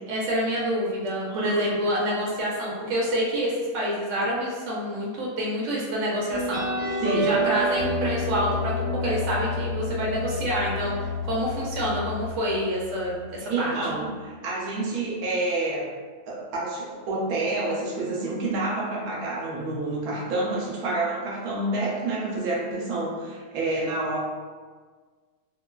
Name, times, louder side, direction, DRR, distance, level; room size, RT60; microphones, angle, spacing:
voice 1, 0.1-6.6 7.1-13.7, equal, 60° right, -4 dB, 1.0 m, -27 dB
voice 2, 1.3-1.7 7.0-7.3 13.5-15.9 16.3-24.2, right 2 dB, 85° right, -4 dB, 1.1 m, -28 dB
sound 1, 6.3-13.4, left 1 dB, 50° left, 1.1 m, -29 dB
3.1 x 2.2 x 2.2 m, 1.5 s
omnidirectional pair, 1.6 m